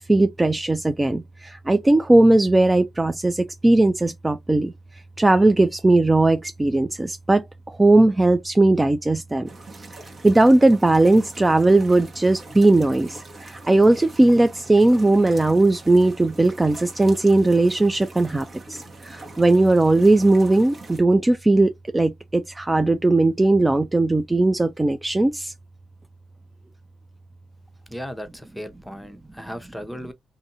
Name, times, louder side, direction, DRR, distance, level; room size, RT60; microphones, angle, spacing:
voice 1, 0.0-4.7 5.2-9.5 10.2-25.5, right 2 dB, 20° right, 0.4 m, -18 dB
sound 1, 9.5-21.0, right 2 dB, 50° right, 1.2 m, -43 dB
voice 2, 27.9-30.1, equal, 5° left, 0.8 m, -36 dB
2.7 x 2.6 x 2.6 m
supercardioid pair, 55°, 0 cm